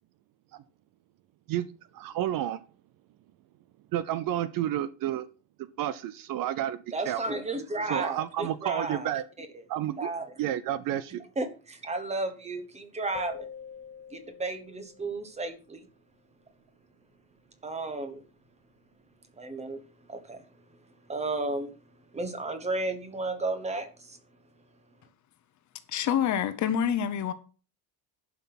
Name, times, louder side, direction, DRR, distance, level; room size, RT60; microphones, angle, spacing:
voice 1, 1.9-2.6 3.9-5.3 5.6-7.2 7.9-9.2 9.7-10.1 10.4-11.2, right 12 dB, 50° right, 0.7 m, -31 dB
voice 2, 6.9-9.1 10.0-10.2 11.4-13.5 14.1-15.9 17.6-18.2 19.4-19.8 20.1-20.4 21.1-21.7 22.1-24.2, right 2 dB, 15° right, 1.2 m, -33 dB
sound 1, 13.1-15.4, left 7 dB, 15° left, 0.5 m, -45 dB
voice 3, 25.9-27.3, left 9 dB, 40° left, 1.0 m, -27 dB
11.0 x 5.9 x 6.0 m
cardioid pair, 165°, 43 cm